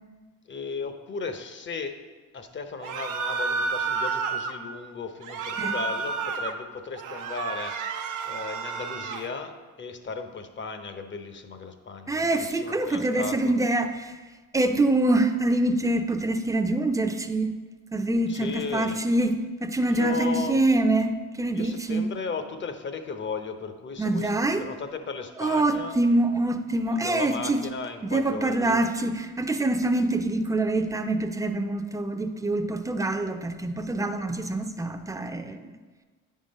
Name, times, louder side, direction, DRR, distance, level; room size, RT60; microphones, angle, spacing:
voice 1, 0.5-2.0 2.3-7.8 8.3-13.5 18.3-19.0 19.9-20.6 21.5-24.3 24.6-26.0 26.9-28.9, left 5 dB, 40° left, 7 dB, 0.8 m, -35 dB
sound 1, 2.8-4.5 5.2-6.5 7.0-9.3, right 5 dB, 85° right, 0.7 m, -30 dB
voice 2, 12.1-14.1 14.5-17.5 17.9-22.1 24.0-24.7 25.4-27.7 28.0-35.7, right 2 dB, 10° right, 7 dB, 0.5 m, -25 dB
9.4 x 3.7 x 5.2 m, 1.4 s
cardioid pair, 90°, 30 cm